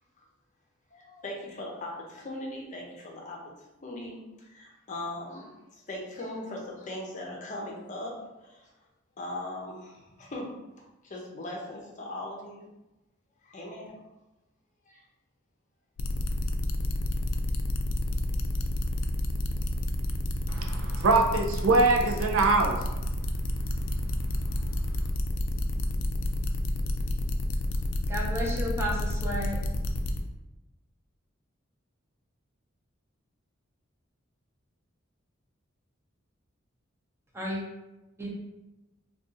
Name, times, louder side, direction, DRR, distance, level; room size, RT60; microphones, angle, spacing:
voice 1, 0.9-3.4 3.8-8.7 9.2-10.5 10.7-12.6 13.4-13.9 14.9-15.0, left 1 dB, 40° left, 0.6 m, -39 dB
sound 1, 16.0-30.2, left 1 dB, 85° left, 0.4 m, -30 dB
voice 2, 20.5-22.9 24.1-24.4, right 3 dB, 75° right, 0.4 m, -24 dB
voice 3, 28.1-29.6 37.3-37.6 38.2-38.3, equal, 15° right, 0.6 m, -32 dB
2.5 x 2.3 x 3.7 m
head